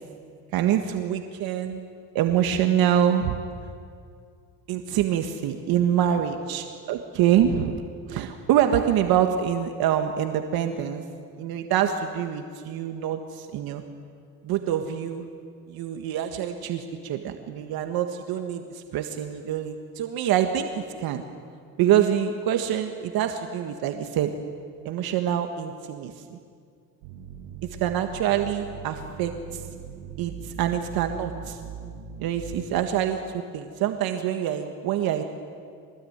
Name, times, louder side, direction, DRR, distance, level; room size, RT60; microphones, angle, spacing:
voice 1, 0.5-1.9 2.1-3.4 4.7-7.8 8.1-11.0 11.4-13.8 14.4-15.3 15.7-21.2 21.8-24.3 24.8-26.4 27.8-29.6 30.2-31.6 32.2-35.2, right 10 dB, 60° right, 6 dB, 1.7 m, -25 dB
sound 1, 27.0-32.6, right 7 dB, 85° right, 2.1 m, -40 dB
23.5 x 20.0 x 9.5 m, 2.2 s
cardioid pair, 120°, 40 cm